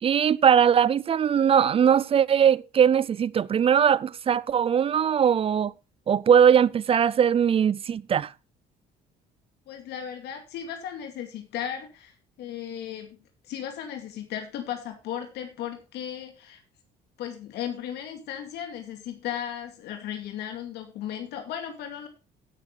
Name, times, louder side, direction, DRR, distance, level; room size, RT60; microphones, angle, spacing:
voice 1, 0.0-5.7 6.1-8.3, right 8 dB, 35° right, 0.4 m, -20 dB
voice 2, 9.7-13.2 13.4-16.6 17.2-22.1, left 9 dB, 80° left, 2.4 m, -36 dB
16.0 x 6.4 x 4.0 m
cardioid pair, 110°, 17 cm